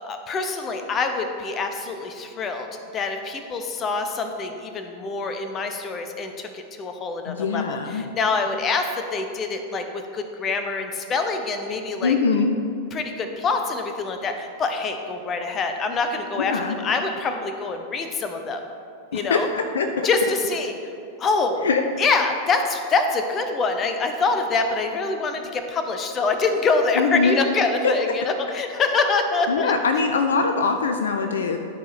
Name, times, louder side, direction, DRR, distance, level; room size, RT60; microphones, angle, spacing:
voice 1, 0.0-2.7 2.9-12.1 12.9-18.6 19.1-19.5 20.0-20.7 21.2-21.7 22.0-29.7, left 4 dB, 25° left, 6 dB, 0.8 m, -25 dB
voice 2, 7.3-8.0 12.0-12.5 16.4-16.8 19.1-20.1 21.6-21.8 27.0-27.4 27.8-27.9 29.5-31.6, left 5 dB, 65° left, 6 dB, 0.5 m, -22 dB
11.5 x 4.9 x 4.2 m, 2.4 s
figure-of-eight pair, 90°, 0 cm